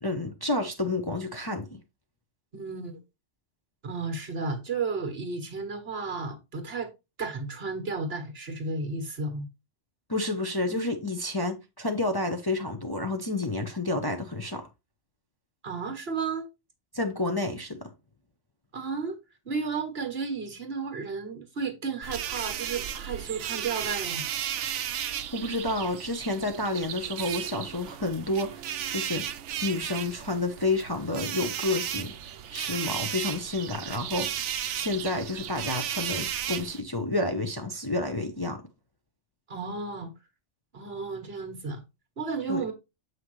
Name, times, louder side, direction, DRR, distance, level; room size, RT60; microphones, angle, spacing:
voice 1, 0.0-1.7 10.1-14.7 16.9-17.9 25.3-29.3 29.6-32.2 32.5-38.6 42.5-42.6, left 2 dB, 20° left, 0.8 m, -30 dB
voice 2, 2.5-2.9 3.8-6.9 7.2-9.5 15.6-16.5 18.7-19.2 19.5-24.2 39.5-40.1 40.7-41.8 42.2-42.7, right 4 dB, 55° right, 1.7 m, -33 dB
sound 1, 22.0-36.8, right 10 dB, 75° right, 0.9 m, -34 dB
7.6 x 5.7 x 3.1 m
omnidirectional pair, 1.3 m